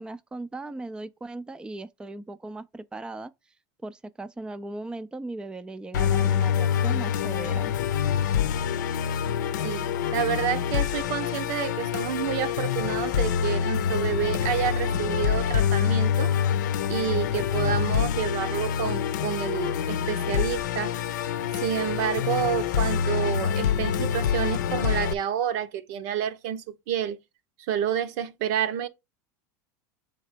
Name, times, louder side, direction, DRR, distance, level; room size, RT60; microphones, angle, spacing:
voice 1, 0.0-3.3 3.8-7.7, right 2 dB, 10° right, 0.4 m, -38 dB
Musical instrument, 5.9-25.1, left 8 dB, 80° left, 0.6 m, -26 dB
voice 2, 10.1-16.3 16.9-20.9 21.6-27.2 27.7-28.9, right 9 dB, 65° right, 0.9 m, -29 dB
7.0 x 3.4 x 5.1 m
hypercardioid pair, 100°, 10 cm